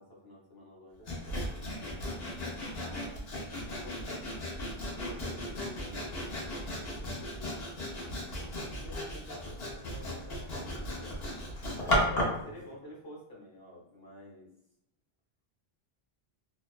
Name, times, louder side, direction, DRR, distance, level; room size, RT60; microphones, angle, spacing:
voice 1, 0.0-2.3 2.7-4.2 5.0-7.6 7.9-11.2 11.8-14.5, equal, 25° left, -4 dB, 0.7 m, -50 dB
Sawing, 1.1-12.4, equal, 75° left, 1.0 m, -35 dB
2.5 x 2.3 x 2.3 m, 0.76 s
omnidirectional pair, 1.0 m